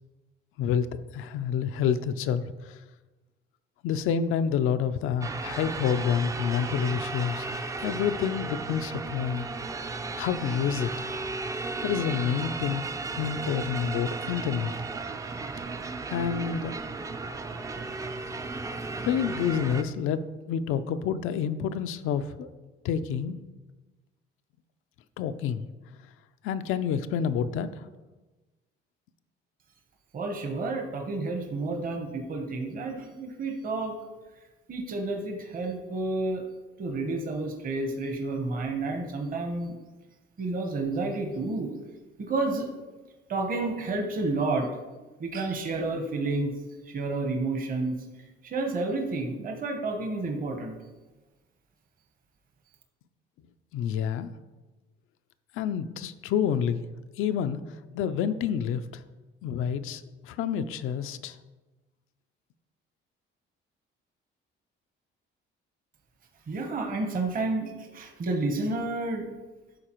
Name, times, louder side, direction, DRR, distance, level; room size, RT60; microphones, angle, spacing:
voice 1, 0.6-2.8 3.8-7.5 7.8-9.5 10.1-10.9 11.8-14.7 16.1-16.8 19.0-22.5 22.8-23.4 25.2-25.7 26.4-27.9 53.7-54.3 55.5-56.9 57.2-57.6 57.9-59.0 59.4-61.4, left 8 dB, 85° left, 10 dB, 0.4 m, -28 dB
sound 1, 5.2-19.8, right 3 dB, 15° right, 0.3 m, -35 dB
voice 2, 30.1-33.9 34.7-36.4 36.8-39.8 40.4-41.7 42.2-42.7 43.3-44.7 45.2-46.5 46.8-48.0 48.4-50.8 66.5-69.3, right 3 dB, 45° right, 3 dB, 1.0 m, -30 dB
11.5 x 4.1 x 3.0 m, 1.2 s
cardioid pair, 125°, 21 cm